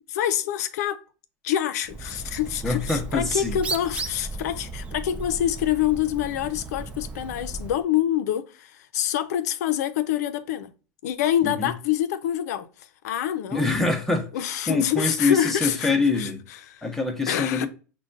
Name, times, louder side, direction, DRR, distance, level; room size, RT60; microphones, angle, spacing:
voice 1, 0.1-1.0 1.4-10.7 11.0-13.7 14.3-16.8 17.3-17.7, left 11 dB, 70° left, 0.5 m, -26 dB
Bird, 1.8-7.8, right 3 dB, 15° right, 0.3 m, -35 dB
voice 2, 2.6-3.6 11.4-11.7 13.5-14.3 14.7-16.4 16.8-17.7, left 3 dB, 5° left, 0.7 m, -24 dB
6.2 x 2.2 x 2.5 m
supercardioid pair, 150°, 9 cm